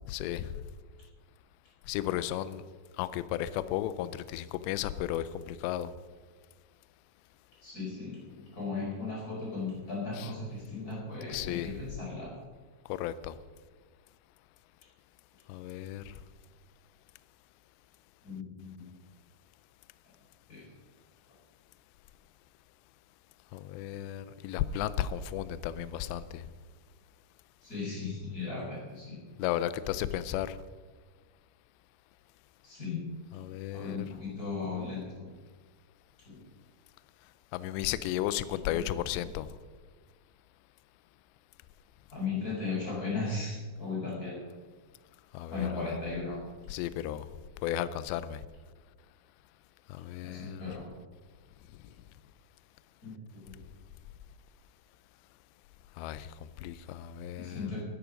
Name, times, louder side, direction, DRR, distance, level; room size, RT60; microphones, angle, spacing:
voice 1, 0.1-0.5 1.9-2.6 3.0-5.9 10.1-10.3 11.3-11.7 12.9-13.4 15.5-16.1 23.5-26.4 29.4-30.6 33.3-34.0 37.5-39.5 45.3-46.0 46.7-47.3 47.6-48.4 49.9-50.7 56.0-56.3 56.6-57.7, left 12 dB, 80° left, 15 dB, 2.6 m, -34 dB
voice 2, 7.6-12.3 18.2-18.9 20.5-20.6 27.6-29.2 32.6-33.0 33.7-35.3 36.2-36.4 42.1-44.4 45.5-46.4 46.9-47.0 50.2-50.9 53.0-53.1 53.4-53.6 57.4-57.8, left 4 dB, 20° left, -5 dB, 4.6 m, -36 dB
14.0 x 13.0 x 5.2 m, 1.4 s
omnidirectional pair, 5.4 m